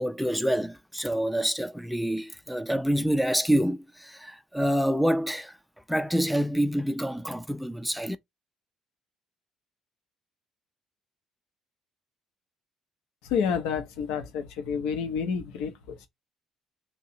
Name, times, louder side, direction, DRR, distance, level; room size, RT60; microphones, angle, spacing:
voice 1, 0.0-5.6 5.9-8.2, equal, ahead, 0.4 m, -27 dB
voice 2, 13.2-16.1, left 6 dB, 65° left, 0.7 m, -29 dB
3.0 x 2.7 x 4.1 m
figure-of-eight pair, 50°, 0 cm